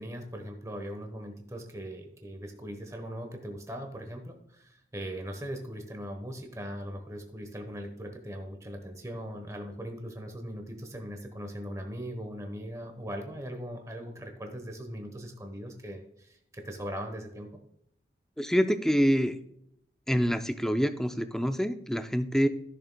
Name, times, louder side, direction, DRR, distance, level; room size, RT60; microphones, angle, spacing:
voice 1, 0.0-17.5, equal, 15° right, 4 dB, 1.0 m, -40 dB
voice 2, 18.4-19.4 20.1-22.5, equal, 5° left, 9 dB, 0.4 m, -26 dB
14.0 x 6.5 x 2.2 m, 0.74 s
head